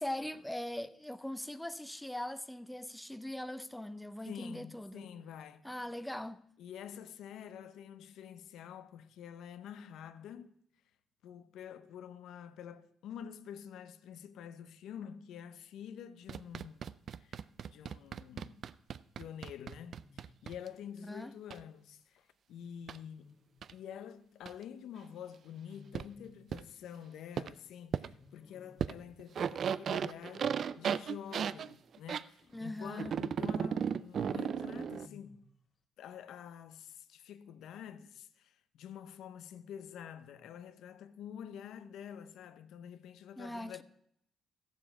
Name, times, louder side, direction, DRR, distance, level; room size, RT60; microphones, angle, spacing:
voice 1, 0.0-5.1 5.6-6.4 21.1-21.3 32.5-33.1 43.4-43.8, left 1 dB, 5° left, 0.5 m, -41 dB
voice 2, 4.3-5.6 6.6-10.5 11.2-16.8 17.2-18.6 19.2-23.3 23.7-35.5 36.0-43.8, left 9 dB, 80° left, 0.7 m, -48 dB
sound 1, 16.3-20.7 21.5-21.6 22.9-23.0 23.6-23.7 24.5-24.6 25.9-26.0 26.5-26.6 27.4-27.5 27.9-28.1 28.8-28.9 29.2-32.2 33.0-35.1, right 7 dB, 55° right, 0.3 m, -35 dB
Wild animals, 18.2-18.5 19.8-20.5 22.8-23.7 25.5-26.6 28.1-29.0 30.5-31.7 32.4-33.3 34.6-35.6, left 4 dB, 45° left, 1.2 m, -59 dB
13.5 x 7.3 x 6.0 m
cardioid pair, 90°, 0 cm